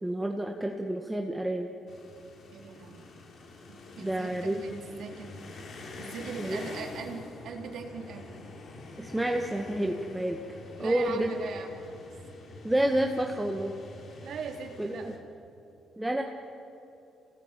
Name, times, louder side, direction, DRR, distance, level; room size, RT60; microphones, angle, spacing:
voice 1, 0.0-1.7 4.0-4.6 6.4-6.6 9.0-10.4 10.8-11.3 12.6-13.7 14.8-15.1 16.0-16.2, right 1 dB, 10° right, 2 dB, 1.6 m, -29 dB
sound 1, 1.9-15.2, left 3 dB, 60° left, 3.4 m, -46 dB
voice 2, 2.5-3.3 3.7-5.5 6.0-8.4 10.8-11.8 14.2-15.1, right 5 dB, 70° right, 2 dB, 3.4 m, -40 dB
27.5 x 19.0 x 9.0 m, 2.8 s
cardioid pair, 90°, 0 cm